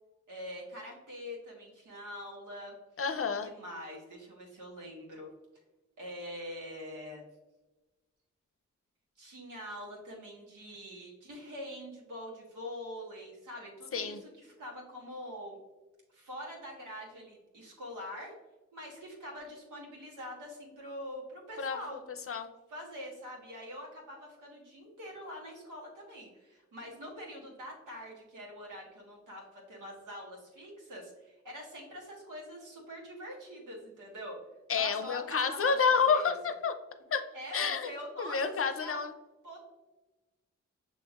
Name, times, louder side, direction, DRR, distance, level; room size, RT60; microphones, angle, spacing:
voice 1, 0.3-2.8 3.4-5.3 6.0-7.3 9.2-15.6 16.1-18.3 18.7-22.0 22.7-34.4 34.7-36.3 37.3-39.0 39.4-39.6, equal, 80° right, -3 dB, 1.5 m, -44 dB
voice 2, 3.0-3.5 13.9-14.2 21.6-21.8 22.3-22.5 34.7-36.7 37.1-37.2 37.5-37.9 38.2-39.1, left 5 dB, 45° left, 8 dB, 0.6 m, -29 dB
6.3 x 2.9 x 2.4 m, 1.1 s
cardioid pair, 45°, 31 cm